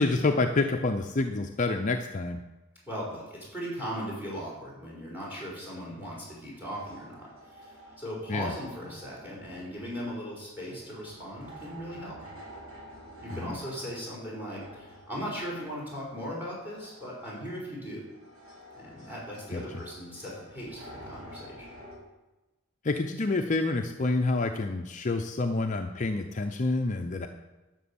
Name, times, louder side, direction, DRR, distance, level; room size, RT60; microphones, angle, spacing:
voice 1, 0.0-2.4 8.3-8.5 13.4-13.6 19.5-19.6 22.8-27.3, left 3 dB, 35° left, 4 dB, 0.6 m, -28 dB
voice 2, 2.9-12.2 13.2-18.0 18.7-21.7, equal, 10° right, -4 dB, 4.8 m, -38 dB
sound 1, 6.6-22.0, equal, 65° right, 3.7 m, -50 dB
11.5 x 6.1 x 8.5 m, 1.1 s
head